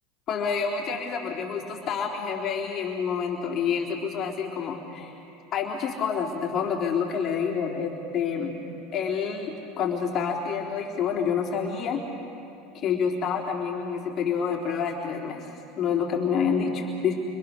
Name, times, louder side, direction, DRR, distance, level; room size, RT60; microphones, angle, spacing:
voice 1, 0.3-5.1 5.5-8.5 8.9-12.0 12.7-17.1, left 6 dB, 45° left, -1 dB, 3.7 m, -28 dB
29.0 x 26.5 x 6.7 m, 2.8 s
supercardioid pair, 105°, 0 cm